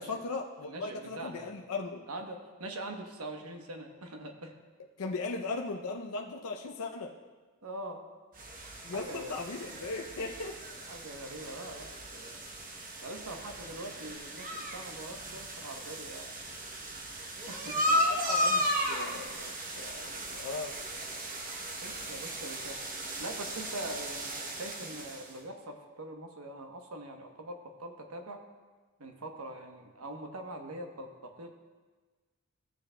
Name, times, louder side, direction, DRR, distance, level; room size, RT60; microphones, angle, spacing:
voice 1, 0.0-2.1 5.0-7.1 8.8-10.6 18.3-20.7, left 3 dB, 85° left, 1 dB, 0.5 m, -38 dB
voice 2, 0.6-1.6 2.1-4.5 7.6-8.0 8.9-9.5 10.9-12.4 13.0-16.3 17.4-18.0 21.8-22.8 23.2-28.4 29.0-31.6, right 1 dB, 80° right, 4 dB, 1.0 m, -43 dB
sound 1, 8.3-25.3, equal, 40° right, 0.9 m, -35 dB
15.5 x 7.1 x 2.2 m, 1.4 s
head